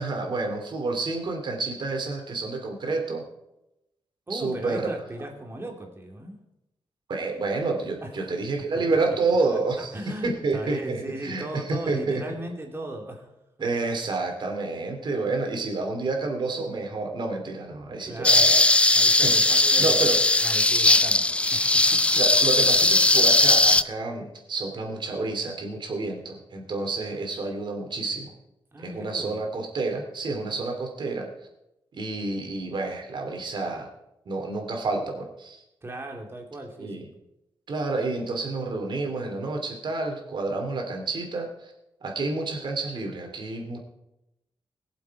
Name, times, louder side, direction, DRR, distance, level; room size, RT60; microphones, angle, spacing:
voice 1, 0.0-3.3 4.3-4.9 7.1-9.9 10.2-12.2 13.6-18.6 19.2-20.5 22.1-28.3 28.8-31.3 31.9-33.9 34.3-35.6 36.8-37.1 37.7-41.7 42.0-43.8, right 3 dB, 60° right, 3 dB, 2.8 m, -29 dB
voice 2, 4.3-6.4 8.0-8.3 8.7-8.8 9.5-9.6 9.9-13.3 18.0-18.6 18.9-20.1 20.4-22.2 28.7-29.4 35.8-37.1, right 1 dB, 25° right, 2 dB, 2.6 m, -37 dB
sound 1, 18.2-23.8, left 2 dB, 15° left, 0.4 m, -19 dB
21.5 x 7.4 x 4.7 m, 0.90 s
wide cardioid pair, 115°, 9 cm